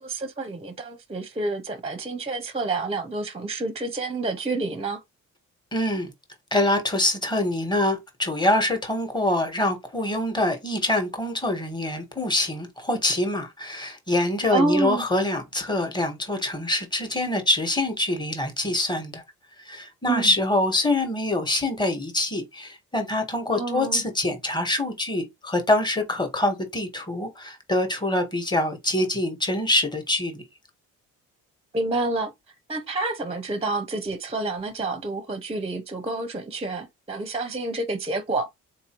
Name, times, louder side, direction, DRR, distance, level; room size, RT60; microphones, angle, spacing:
voice 1, 0.0-5.0 14.5-15.0 20.1-20.3 23.5-24.0 31.7-32.3 32.7-38.5, right 2 dB, 20° right, 0.6 m, -28 dB
voice 2, 5.7-6.1 6.5-19.2 19.6-30.4, left 1 dB, 15° left, 1.3 m, -25 dB
3.9 x 2.6 x 2.9 m
cardioid pair, 90°, 30 cm